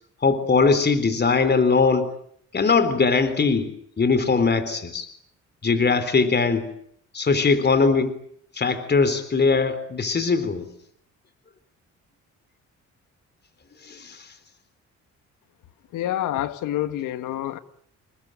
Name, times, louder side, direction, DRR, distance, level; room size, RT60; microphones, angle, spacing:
voice 1, 0.2-2.1 2.5-3.7 4.0-5.1 5.6-6.7 7.1-8.2 8.5-10.7 13.8-14.3, left 4 dB, 35° left, 3.7 m, -21 dB
voice 2, 15.9-17.6, left 13 dB, 90° left, 1.7 m, -27 dB
28.5 x 21.5 x 9.0 m
cardioid pair, 90°, 30 cm